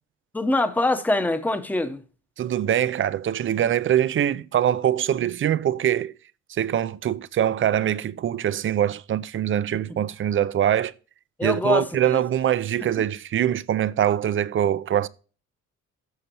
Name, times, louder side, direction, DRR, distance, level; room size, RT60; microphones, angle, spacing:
voice 1, 0.3-2.0 11.4-12.2, left 2 dB, 5° left, 0.9 m, -24 dB
voice 2, 2.4-6.1 6.5-10.9 11.4-15.1, right 10 dB, 45° right, 0.5 m, -23 dB
15.5 x 6.5 x 3.0 m
cardioid pair, 115°, 30 cm